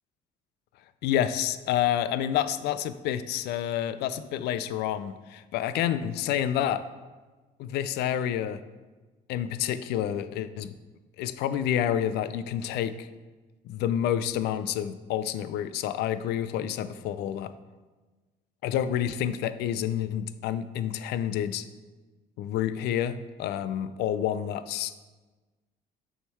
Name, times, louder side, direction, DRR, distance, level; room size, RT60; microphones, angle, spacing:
voice 1, 1.0-6.8 7.6-8.6 9.3-10.7 11.2-13.1 13.6-17.5 18.6-21.6 22.4-24.9, left 10 dB, 80° left, 13 dB, 0.4 m, -29 dB
6.9 x 3.7 x 4.5 m, 1.2 s
cardioid pair, 110°, 17 cm